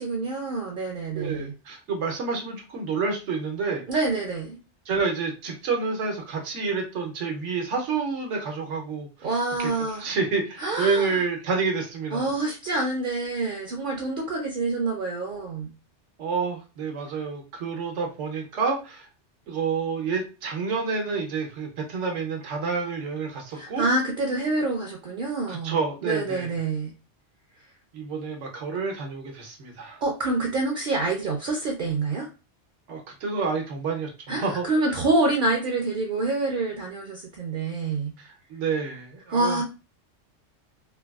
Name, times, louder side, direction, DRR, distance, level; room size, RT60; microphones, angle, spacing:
voice 1, 0.0-1.5 3.9-4.6 9.2-10.1 10.6-11.2 12.1-15.7 23.5-26.9 30.0-32.3 34.3-38.1 39.3-39.6, right 2 dB, 55° right, 2 dB, 0.6 m, -27 dB
voice 2, 1.1-3.8 4.9-9.3 9.6-9.7 10.0-12.3 16.2-19.1 19.5-23.9 25.5-26.5 27.9-30.0 32.9-34.6 38.2-39.6, right 4 dB, 85° right, 2 dB, 1.1 m, -29 dB
3.3 x 2.2 x 2.3 m, 0.31 s
omnidirectional pair, 1.2 m